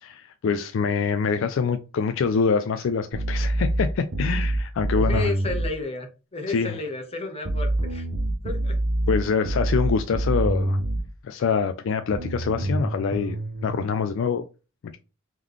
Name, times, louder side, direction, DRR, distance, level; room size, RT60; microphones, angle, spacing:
voice 1, 0.0-5.3 6.5-6.8 9.1-10.8 11.2-14.5, left 5 dB, 65° left, 0.4 m, -25 dB
sound 1, 3.1-5.7 7.5-11.1 12.1-13.8, right 1 dB, 65° right, 0.9 m, -25 dB
voice 2, 4.9-8.0 8.4-8.7, left 2 dB, 30° left, 1.0 m, -32 dB
3.7 x 3.1 x 3.5 m
head